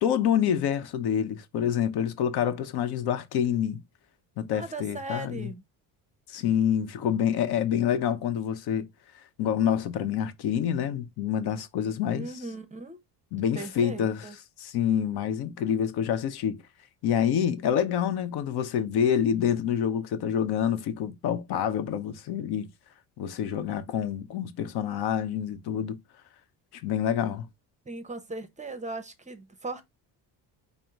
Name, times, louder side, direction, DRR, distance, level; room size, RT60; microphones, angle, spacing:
voice 1, 0.0-3.8 4.4-5.5 6.3-8.9 9.4-12.3 13.3-14.3 14.6-16.6 17.0-22.7 23.2-26.0 26.7-27.5, left 9 dB, 65° left, 0.8 m, -27 dB
voice 2, 4.5-5.6 12.1-13.0 13.5-14.4 27.9-29.8, right 2 dB, 15° right, 0.7 m, -38 dB
5.2 x 2.1 x 4.5 m
cardioid pair, 120°, 42 cm